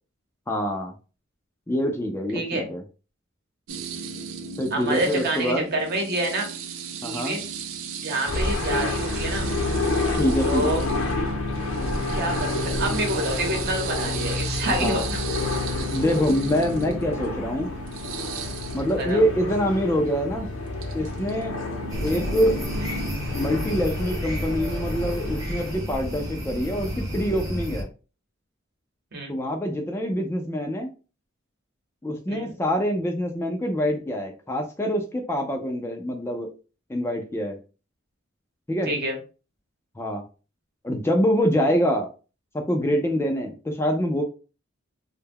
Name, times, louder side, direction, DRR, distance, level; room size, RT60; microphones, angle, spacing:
voice 1, 0.5-0.9 1.7-2.8 4.6-5.7 7.0-7.4 10.1-10.8 14.7-15.1 15.9-17.8 18.7-20.5 20.9-21.5 22.0-22.6 23.3-27.9 29.3-30.9 32.0-36.5 36.9-37.6 38.7-38.9 40.0-40.2 40.8-42.1 42.5-44.2, equal, 10° left, 3 dB, 0.3 m, -25 dB
voice 2, 2.3-2.7 4.7-6.5 7.0-7.4 8.0-9.5 10.4-10.8 12.1-15.2 19.0-19.2 29.1-29.3 32.3-32.5 38.8-39.2, right 1 dB, 55° right, 2 dB, 0.9 m, -27 dB
sound 1, 3.7-23.2, right 4 dB, 85° right, 0.4 m, -36 dB
sound 2, 8.3-25.8, left 2 dB, 80° left, 0.6 m, -29 dB
sound 3, 21.9-27.8, equal, 20° right, 0.7 m, -31 dB
2.2 x 2.0 x 3.3 m, 0.34 s
head